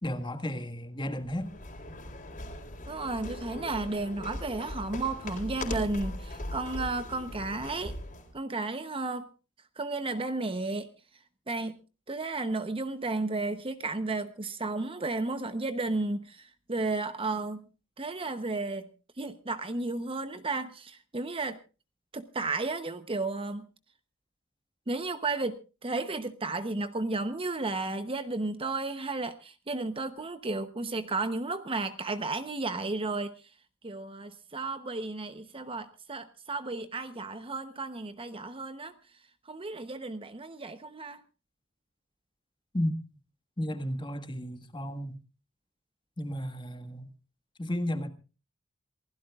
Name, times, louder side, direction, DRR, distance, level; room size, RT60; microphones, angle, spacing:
voice 1, 0.0-1.5 42.7-43.0 43.6-45.2 46.2-47.1 47.6-48.1, equal, 20° left, 1.7 m, -33 dB
sound 1, 1.1-8.3, left 1 dB, 40° left, 3.9 m, -39 dB
voice 2, 2.9-7.9 8.3-9.3 9.8-10.9 11.5-11.8 12.1-17.7 18.0-18.9 19.2-21.6 22.1-23.7 24.9-33.3 33.8-38.9 39.5-41.2, right 3 dB, 25° right, 0.9 m, -33 dB
27.0 x 16.0 x 2.4 m
head